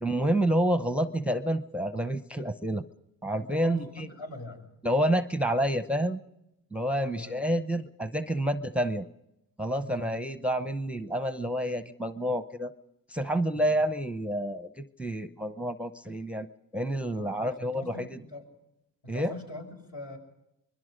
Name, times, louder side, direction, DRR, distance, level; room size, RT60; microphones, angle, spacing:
voice 1, 0.0-2.8 3.2-4.1 4.8-6.2 6.7-9.1 9.6-12.7 13.1-16.5 16.7-18.2 19.1-19.3, right 1 dB, 5° right, 11 dB, 0.7 m, -29 dB
voice 2, 3.4-4.7 7.0-7.4 9.8-10.1 13.5-13.7 17.2-18.5 19.0-20.2, left 2 dB, 65° left, 2 dB, 6.5 m, -42 dB
24.5 x 21.5 x 5.1 m, 0.87 s
supercardioid pair, 75°, 38 cm